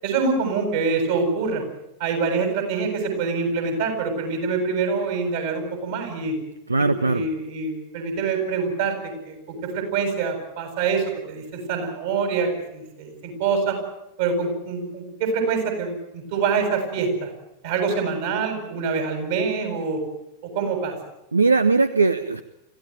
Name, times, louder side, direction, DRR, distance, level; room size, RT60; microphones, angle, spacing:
voice 1, 0.0-1.6 2.0-6.3 6.8-13.8 14.2-17.3 17.6-20.0 20.4-21.0, right 4 dB, 55° right, 5 dB, 7.9 m, -25 dB
voice 2, 6.7-7.2 21.3-22.4, right 3 dB, 80° right, 14 dB, 0.9 m, -19 dB
26.0 x 16.0 x 9.3 m, 0.88 s
figure-of-eight pair, 90°, 0 cm